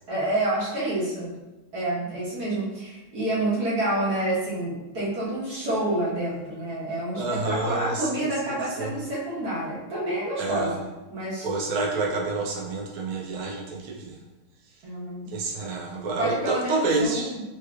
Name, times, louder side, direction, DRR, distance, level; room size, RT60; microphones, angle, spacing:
voice 1, 0.1-1.4 1.7-10.8 11.1-11.5 14.8-15.4 16.2-17.4, right 1 dB, 50° right, -8 dB, 1.6 m, -28 dB
voice 2, 7.2-8.3 8.8-9.0 10.4-10.8 11.4-14.2 15.3-17.3, right 3 dB, 90° right, -2 dB, 1.7 m, -28 dB
4.4 x 3.0 x 2.3 m, 1.1 s
omnidirectional pair, 2.3 m